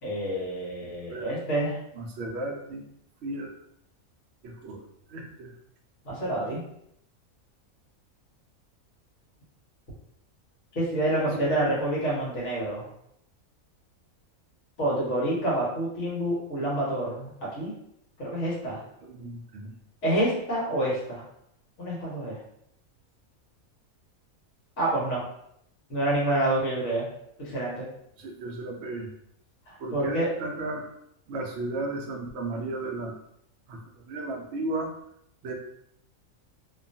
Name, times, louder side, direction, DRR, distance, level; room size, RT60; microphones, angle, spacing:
voice 1, 0.0-1.8 6.0-6.6 10.7-12.9 14.8-17.3 17.5-17.7 18.2-18.8 20.0-21.2 21.8-22.4 24.8-25.2 25.9-27.1 27.4-27.9 29.7-30.3, right 1 dB, 60° left, -5 dB, 1.3 m, -27 dB
voice 2, 0.8-1.3 2.0-2.9 3.2-3.5 4.4-4.8 5.1-5.5 6.3-6.5 11.4-11.7 19.0-19.8 28.2-29.1 29.8-30.9 31.3-33.2 33.7-33.8 34.1-34.9 35.4-35.5, right 2 dB, 60° right, 1 dB, 0.7 m, -34 dB
2.9 x 2.3 x 2.6 m, 0.73 s
omnidirectional pair, 1.4 m